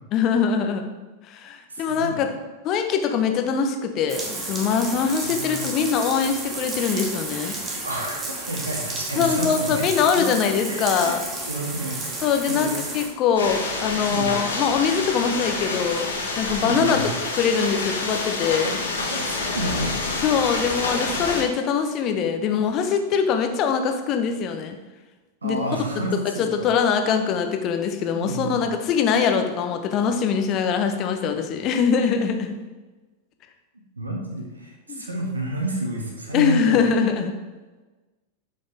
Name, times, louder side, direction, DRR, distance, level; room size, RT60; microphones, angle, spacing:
voice 1, 0.1-0.8 1.3-2.3 2.6-7.5 9.2-11.2 12.2-16.1 16.4-17.0 17.3-18.8 20.2-24.8 25.4-25.6 26.4-32.5 34.9-35.0 36.3-37.3, left 6 dB, 35° left, 5 dB, 1.0 m, -23 dB
voice 2, 1.7-2.2 5.2-5.6 7.8-9.8 10.1-10.2 10.7-11.1 11.4-12.0 12.5-12.8 14.1-14.4 16.6-17.1 19.1-19.9 25.4-26.7 28.2-28.7 34.0-36.8, right 1 dB, 75° right, 0 dB, 1.8 m, -30 dB
sound 1, 4.1-13.1, right 2 dB, 25° right, 1.7 m, -32 dB
sound 2, 13.4-21.4, left 3 dB, 70° left, 2.0 m, -27 dB
11.5 x 5.4 x 3.5 m, 1.2 s
figure-of-eight pair, 90°, 0 cm